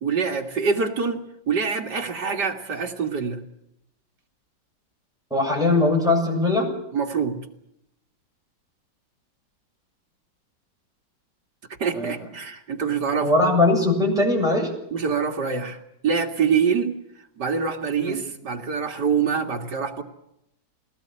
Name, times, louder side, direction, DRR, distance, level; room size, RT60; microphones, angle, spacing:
voice 1, 0.0-3.4 6.9-7.4 11.8-13.3 14.9-15.8 16.0-16.9 17.4-20.0, right 6 dB, 60° right, 3 dB, 2.6 m, -25 dB
voice 2, 5.3-6.7 11.9-12.3 13.2-14.7 18.0-18.2, left 2 dB, ahead, -2 dB, 7.5 m, -20 dB
22.0 x 19.0 x 8.9 m, 0.80 s
omnidirectional pair, 2.1 m